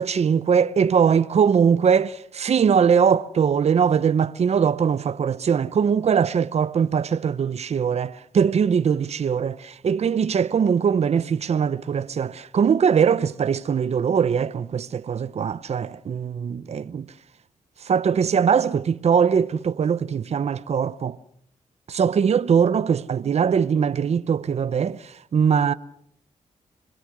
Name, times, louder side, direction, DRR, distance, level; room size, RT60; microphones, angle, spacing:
voice 1, 0.0-17.1 17.9-21.2 21.9-25.7, right 7 dB, 55° right, 0.8 m, -21 dB
25.5 x 22.0 x 6.2 m
cardioid pair, 90°, 13 cm